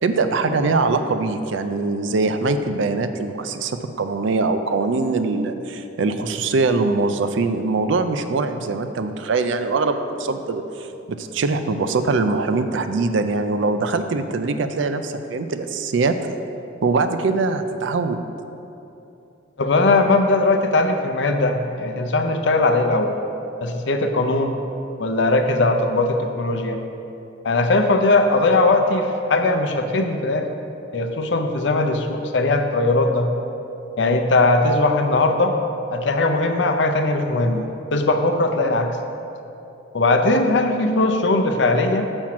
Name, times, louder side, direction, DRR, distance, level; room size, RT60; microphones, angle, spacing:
voice 1, 0.0-16.2 16.8-18.2, right 3 dB, 70° right, 9 dB, 0.4 m, -22 dB
voice 2, 19.6-23.1 23.6-24.6 25.0-26.8 27.4-30.5 30.9-33.3 34.0-35.6 35.9-37.6 37.9-38.9 39.9-42.1, left 2 dB, 65° left, 6 dB, 0.6 m, -19 dB
7.5 x 4.4 x 5.9 m, 2.8 s
head